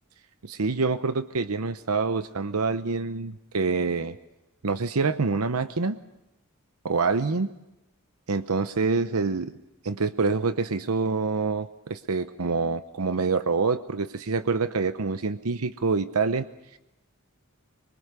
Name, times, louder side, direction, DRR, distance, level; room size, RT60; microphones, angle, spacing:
voice 1, 0.4-4.2 4.6-6.0 6.8-7.5 8.3-9.5 9.8-16.5, right 4 dB, 90° right, 11 dB, 0.8 m, -26 dB
25.0 x 23.5 x 6.8 m, 0.92 s
head